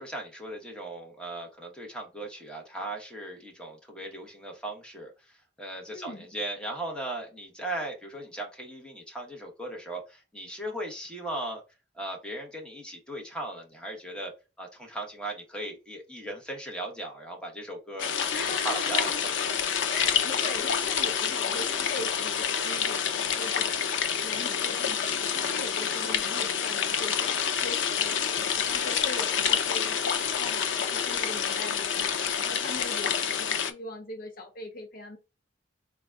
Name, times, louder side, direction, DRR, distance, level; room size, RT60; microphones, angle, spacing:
voice 1, 0.0-11.6 11.9-14.3 14.6-18.1 18.6-19.1, right 1 dB, 5° left, 1.1 m, -37 dB
voice 2, 5.9-6.3 18.3-19.2 19.9-23.9 24.2-35.2, left 2 dB, 50° left, 0.7 m, -40 dB
sound 1, 18.0-33.7, left 7 dB, 90° left, 0.5 m, -28 dB
3.9 x 2.3 x 3.6 m
head